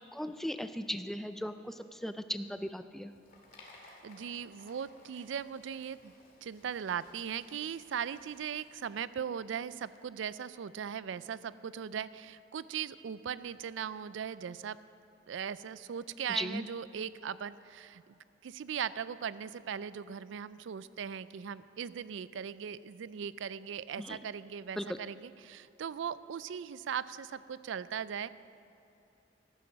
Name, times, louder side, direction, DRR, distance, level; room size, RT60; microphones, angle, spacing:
voice 1, 0.1-3.1 16.3-16.6 24.0-24.2 24.8-25.0, equal, ahead, 10 dB, 0.3 m, -37 dB
sound 1, 2.9-10.0, left 2 dB, 45° left, 2.1 m, -60 dB
voice 2, 3.8-6.1 6.4-14.8 15.3-28.3, right 8 dB, 80° right, 16 dB, 0.4 m, -39 dB
13.0 x 9.9 x 6.2 m, 2.7 s
head